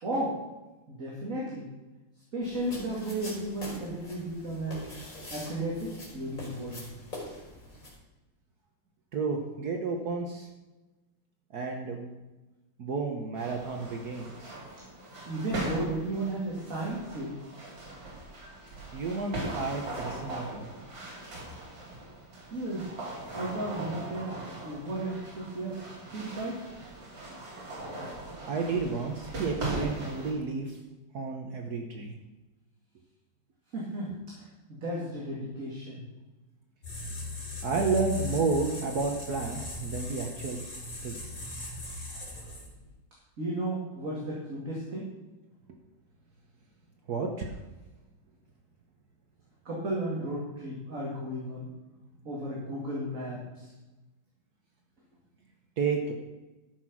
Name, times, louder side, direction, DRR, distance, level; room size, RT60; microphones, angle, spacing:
voice 1, 0.0-0.4 0.9-1.7 2.3-4.9 5.3-6.9 15.3-17.3 22.5-22.9 23.3-25.8 26.1-26.6 33.7-34.2 34.7-36.0 42.4-42.5 43.4-45.1 49.6-51.7 52.2-53.7, right 1 dB, 45° right, -4 dB, 2.5 m, -34 dB
sound 1, 2.4-7.9, left 1 dB, 40° left, 4.4 m, -44 dB
voice 2, 9.1-10.5 11.5-12.1 12.8-14.6 18.9-20.7 28.4-30.8 31.1-32.1 37.6-40.6 41.0-41.4 47.1-47.6 55.8-56.1, right 4 dB, 60° right, 3 dB, 1.4 m, -31 dB
sound 2, 13.3-30.3, right 2 dB, 75° right, 3.7 m, -40 dB
sound 3, 36.8-42.9, left 2 dB, 65° left, 3.8 m, -38 dB
13.0 x 6.1 x 6.0 m, 1.1 s
omnidirectional pair, 2.1 m